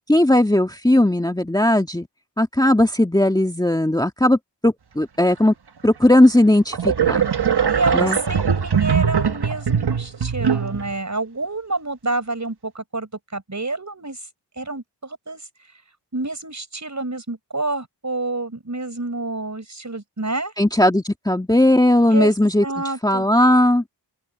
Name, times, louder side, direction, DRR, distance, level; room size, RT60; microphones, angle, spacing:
voice 1, 0.0-2.0 2.4-5.5 5.8-7.2 7.9-8.2 20.6-22.7 23.0-23.8, left 1 dB, 10° left, 1.8 m, -17 dB
sound 1, 6.0-6.1 6.7-10.9, right 7 dB, 60° right, 1.5 m, -21 dB
voice 2, 7.7-14.2 14.6-15.4 16.1-20.5 22.1-22.3 22.6-23.3, right 2 dB, 40° right, 6.5 m, -28 dB
open air
cardioid pair, 45°, 43 cm